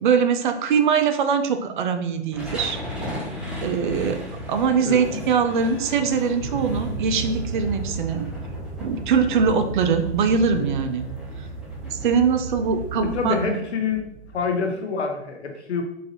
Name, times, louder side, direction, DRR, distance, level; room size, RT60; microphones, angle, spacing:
voice 1, 0.0-2.8 3.6-4.2 4.5-8.3 8.8-11.1 11.9-13.5, right 6 dB, 45° right, 8 dB, 0.4 m, -22 dB
sound 1, 2.3-14.7, equal, 5° right, 0.7 m, -37 dB
sound 2, 4.6-10.3, right 1 dB, 20° left, 1.4 m, -43 dB
voice 2, 4.8-5.2 10.5-10.7 13.1-14.0 14.3-15.8, left 5 dB, 75° left, 4 dB, 0.8 m, -26 dB
sound 3, 6.4-13.4, right 4 dB, 75° right, 0.9 m, -34 dB
3.9 x 2.5 x 2.8 m, 0.80 s
figure-of-eight pair, 115°, 34 cm